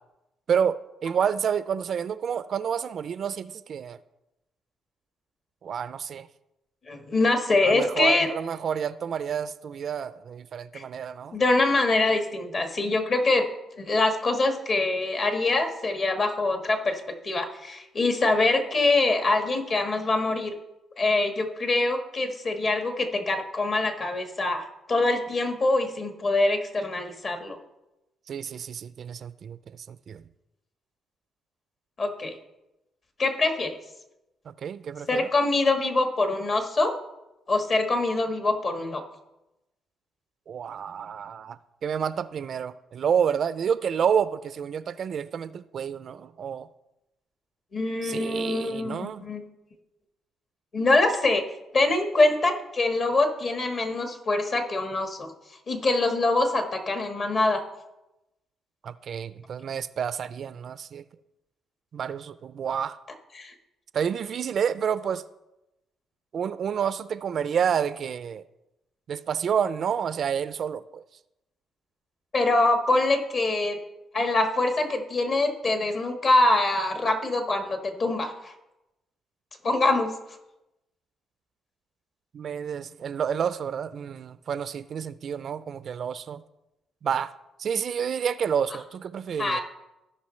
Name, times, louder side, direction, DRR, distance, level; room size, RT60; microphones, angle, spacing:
voice 1, 0.5-4.0 5.6-6.3 7.6-11.4 28.3-30.2 34.5-35.3 40.5-46.7 48.0-49.2 58.8-61.0 61.9-63.0 63.9-65.2 66.3-68.4 69.1-71.0 82.3-86.4 87.0-87.3 87.6-89.6, right 7 dB, 55° right, 15 dB, 0.3 m, -29 dB
voice 2, 6.9-8.3 10.7-10.8 11.3-13.5 13.8-20.5 21.0-27.6 32.0-32.3 33.2-33.8 35.1-36.9 37.5-39.0 47.7-49.4 50.7-51.4 51.7-55.3 55.7-57.6 63.3-63.5 72.3-73.8 74.1-78.5 79.6-80.1 89.4-89.6, left 2 dB, 45° left, 5 dB, 1.5 m, -24 dB
16.5 x 5.5 x 3.2 m, 0.94 s
cardioid pair, 90°, 0 cm